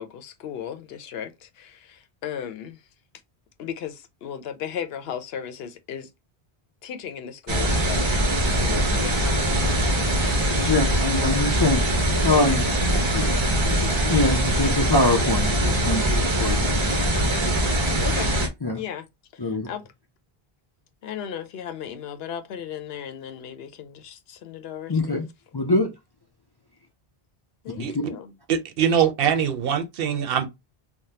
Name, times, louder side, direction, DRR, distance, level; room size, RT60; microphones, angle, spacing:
voice 1, 0.0-2.8 3.6-6.1 6.8-10.7 18.0-18.3 18.7-19.1 19.3-19.9 21.0-25.2 27.6-28.3, left 8 dB, 75° left, 0.8 m, -36 dB
sound 1, 7.5-18.5, right 1 dB, 35° right, 0.6 m, -22 dB
voice 2, 10.7-11.8 12.2-16.7 18.6-18.8 19.4-19.7 24.9-25.2 25.5-25.9 27.8-28.0, left 2 dB, 35° left, 0.4 m, -24 dB
voice 3, 28.5-30.5, right 8 dB, 70° right, 0.8 m, -23 dB
3.5 x 2.1 x 2.7 m
omnidirectional pair, 1.0 m